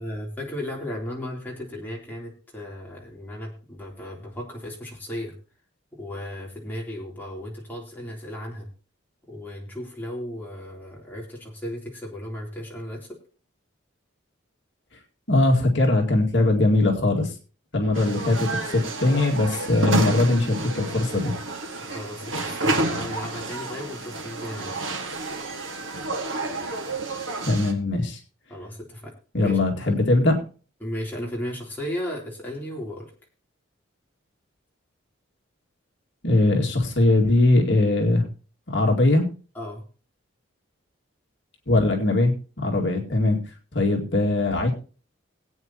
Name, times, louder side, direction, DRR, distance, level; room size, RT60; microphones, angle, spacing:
voice 1, 0.0-5.3 5.9-8.7 9.3-13.2 17.8-18.3 21.8-24.8 28.5-29.6 30.8-33.1 39.5-39.8, left 1 dB, 10° left, -3 dB, 3.4 m, -35 dB
voice 2, 15.3-17.3 17.7-21.4 27.4-28.2 29.3-30.4 36.2-38.3 38.7-39.3 41.7-43.4 43.7-44.7, left 2 dB, 60° left, 1 dB, 2.2 m, -21 dB
sound 1, 17.9-27.7, right 2 dB, 70° right, 1.9 m, -29 dB
19.5 x 8.8 x 3.0 m, 0.37 s
head